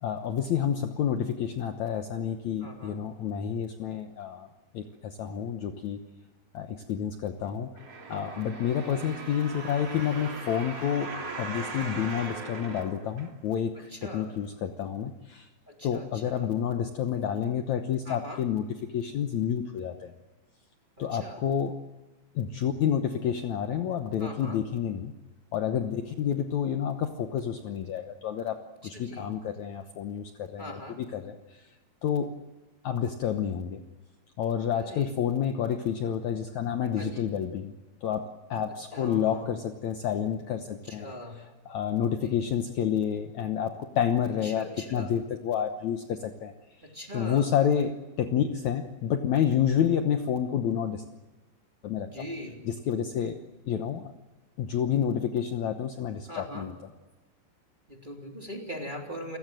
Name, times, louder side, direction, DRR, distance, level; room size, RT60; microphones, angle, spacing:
voice 1, 0.0-4.5 4.7-6.0 6.5-7.7 8.1-11.1 11.4-15.5 15.8-18.6 18.9-20.1 21.0-21.7 22.3-25.1 25.5-31.7 32.0-32.3 32.8-33.8 34.4-37.7 38.0-41.1 41.6-46.5 46.8-46.9 47.1-51.0 51.8-52.3 52.6-53.4 53.7-54.1 54.6-56.8, left 8 dB, 80° left, 6 dB, 1.6 m, -29 dB
voice 2, 2.6-3.0 8.1-8.5 13.7-14.3 15.7-16.5 18.1-18.4 21.0-21.4 24.2-24.6 28.9-29.3 30.6-31.0 34.7-35.1 37.0-37.3 38.9-39.5 40.8-41.4 42.1-42.4 44.4-45.1 46.8-47.5 52.0-52.6 56.3-56.7 57.9-59.4, equal, 15° right, 1 dB, 2.7 m, -41 dB
sound 1, 7.8-13.7 14.3-14.4, right 3 dB, 35° right, 3.9 m, -39 dB
29.5 x 17.5 x 7.6 m, 1.2 s
omnidirectional pair, 4.9 m